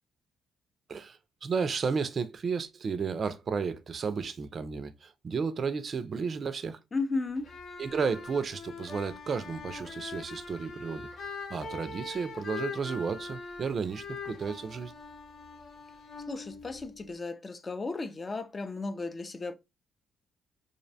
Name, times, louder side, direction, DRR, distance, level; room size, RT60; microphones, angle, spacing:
voice 1, 0.9-6.8 7.8-11.1 11.5-14.9, right 5 dB, 45° right, 0.3 m, -33 dB
voice 2, 6.9-7.5 16.3-19.5, left 3 dB, 30° left, 0.4 m, -34 dB
sound 1, 7.4-17.1, left 4 dB, 65° left, 0.7 m, -42 dB
2.6 x 2.1 x 2.6 m
cardioid pair, 90°, 0 cm